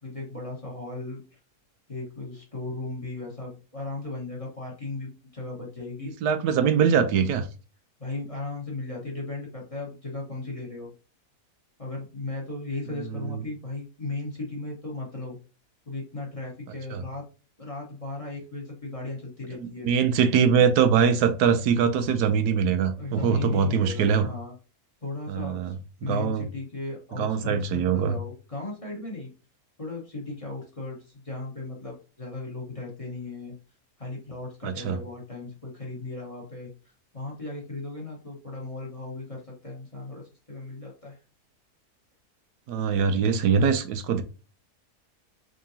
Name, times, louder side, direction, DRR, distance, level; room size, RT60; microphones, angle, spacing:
voice 1, 0.0-1.4 1.9-6.1 8.0-10.9 11.8-15.4 15.8-17.2 17.6-19.9 22.9-24.5 25.0-25.8 26.0-29.3 29.8-33.5 34.0-36.7 37.1-41.2, left 2 dB, 25° left, 1.3 m, -36 dB
voice 2, 6.0-7.4 13.1-13.4 16.9-17.0 19.6-24.3 25.3-25.7 26.0-26.4 27.2-28.2 34.6-35.0 42.7-44.2, right 6 dB, 90° right, 1.2 m, -23 dB
3.8 x 3.7 x 2.7 m
omnidirectional pair, 1.7 m